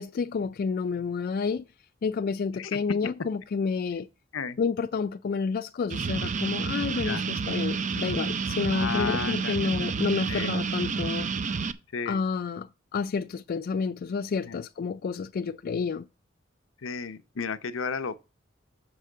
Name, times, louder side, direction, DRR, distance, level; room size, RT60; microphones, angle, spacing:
voice 1, 0.0-1.6 2.0-4.1 4.6-11.3 12.1-16.1, left 5 dB, 50° left, 0.3 m, -30 dB
sound 1, 5.9-11.7, right 5 dB, 40° right, 0.5 m, -29 dB
voice 2, 8.7-9.9 10.3-10.5 11.9-12.2 14.5-14.6 16.8-18.2, left 5 dB, 80° left, 0.7 m, -33 dB
6.7 x 4.8 x 6.5 m
head